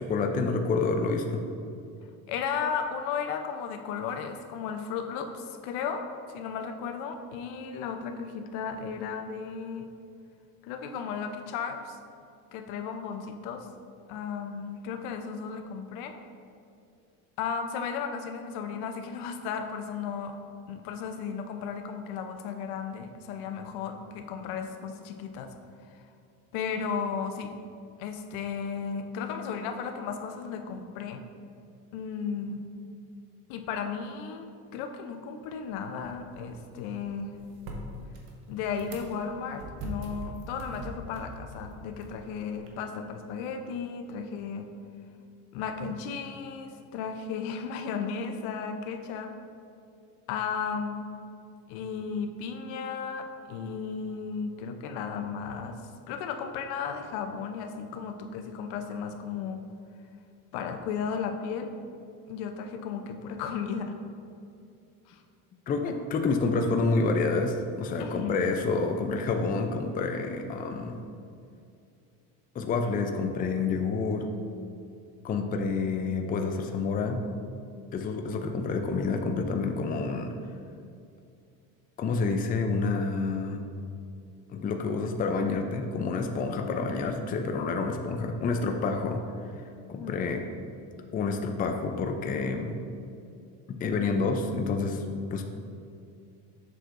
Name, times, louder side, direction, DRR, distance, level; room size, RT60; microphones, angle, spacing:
voice 1, 0.0-1.4 65.7-71.0 72.5-74.3 75.2-77.2 77.9-80.3 82.0-83.6 84.5-89.2 89.9-90.4 91.1-92.7 93.7-95.0 95.3-95.4, left 4 dB, 25° left, 4 dB, 0.4 m, -28 dB
voice 2, 2.3-6.0 6.3-9.9 10.6-12.0 12.5-13.7 14.1-16.1 17.4-20.4 20.7-25.5 25.9-26.0 26.5-27.5 28.0-31.2 31.9-32.6 33.5-37.4 38.5-44.7 45.5-49.3 50.3-51.1 51.7-55.8 56.1-59.6 60.5-61.7 62.3-64.0 65.1-65.2 68.0-68.4 89.9-90.2, left 6 dB, 80° left, 5 dB, 0.7 m, -34 dB
sound 1, 35.7-42.7, right 1 dB, 85° right, 1.1 m, -43 dB
7.5 x 6.2 x 2.5 m, 2.5 s
cardioid pair, 120°, 39 cm